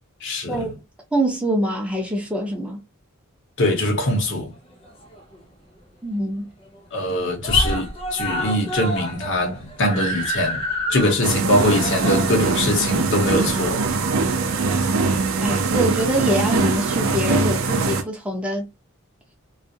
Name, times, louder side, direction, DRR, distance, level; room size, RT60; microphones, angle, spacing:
voice 1, 0.2-0.7 3.6-4.5 6.9-10.6 10.9-13.8, left 1 dB, 60° left, 0.8 m, -22 dB
voice 2, 1.1-2.8 6.0-6.5 15.4-18.7, right 1 dB, 5° right, 0.7 m, -24 dB
Screaming, 4.5-5.5 5.8-5.9 6.2-6.3 6.6-7.1 7.4-14.2 15.1-15.2, equal, 25° left, 0.7 m, -29 dB
sound 1, 11.2-18.0, right 4 dB, 70° right, 0.5 m, -22 dB
2.4 x 2.1 x 2.6 m
head